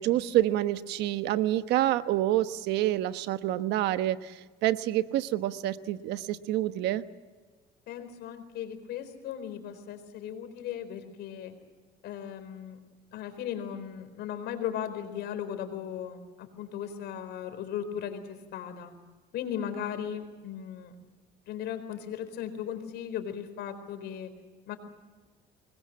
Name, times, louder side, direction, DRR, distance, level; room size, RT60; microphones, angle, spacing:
voice 1, 0.0-7.0, right 14 dB, 85° right, 12 dB, 1.1 m, -27 dB
voice 2, 7.9-11.5 12.0-12.8 13.1-18.9 19.3-20.9 21.5-24.3 24.7-24.8, left 9 dB, 80° left, 9 dB, 4.3 m, -37 dB
26.0 x 21.5 x 7.5 m, 1.3 s
cardioid pair, 110°, 17 cm